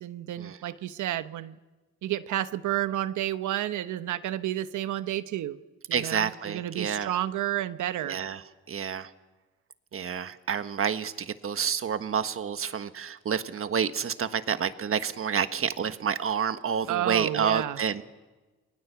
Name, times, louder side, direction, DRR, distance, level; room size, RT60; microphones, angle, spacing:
voice 1, 0.0-1.6 2.0-5.6 5.9-8.2 16.9-17.8, right 13 dB, 75° right, 12 dB, 1.1 m, -31 dB
voice 2, 5.9-7.1 8.0-8.4 8.7-9.1 9.9-18.0, right 7 dB, 45° right, 10 dB, 1.4 m, -29 dB
29.5 x 21.5 x 7.0 m, 1.2 s
cardioid pair, 90°, 30 cm